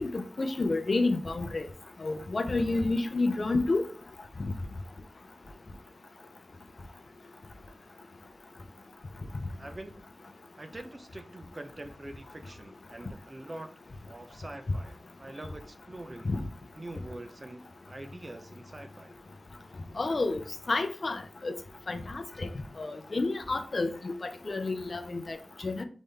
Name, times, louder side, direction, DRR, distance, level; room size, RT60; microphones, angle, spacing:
voice 1, 0.0-1.6 2.0-3.9 4.4-4.5 16.3-16.4 20.0-20.4 20.7-21.5 21.9-22.5 22.8-25.8, left 3 dB, 55° left, 8 dB, 0.6 m, -30 dB
voice 2, 9.6-10.1 10.6-13.7 14.0-16.3 16.7-19.1, right 1 dB, 35° right, 7 dB, 0.7 m, -45 dB
4.1 x 3.6 x 3.4 m, 0.41 s
wide cardioid pair, 70°, 0 cm